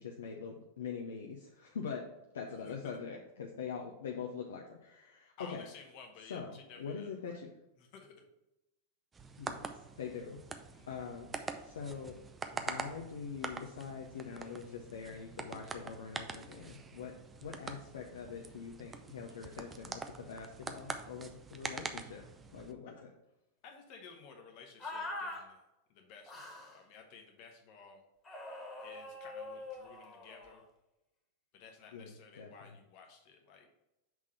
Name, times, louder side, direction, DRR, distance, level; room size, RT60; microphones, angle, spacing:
voice 1, 0.0-5.6 6.3-6.5 6.8-7.5 9.4-10.4 10.9-12.2 12.5-22.3 22.5-23.1 31.9-32.5, left 6 dB, 65° left, 0 dB, 0.7 m, -44 dB
voice 2, 2.6-3.0 5.4-7.4 7.8-8.2 10.7-10.9 22.9-23.0 23.6-25.6 25.9-28.0 28.8-30.6 31.5-33.7, left 5 dB, 45° left, 3 dB, 1.2 m, -55 dB
sound 1, 9.1-22.7, right 4 dB, 15° right, 0.5 m, -45 dB
sound 2, 24.8-25.4 26.3-26.8 28.2-30.6, left 2 dB, 20° left, 1.6 m, -43 dB
6.0 x 3.7 x 5.7 m, 0.94 s
figure-of-eight pair, 90°, 0 cm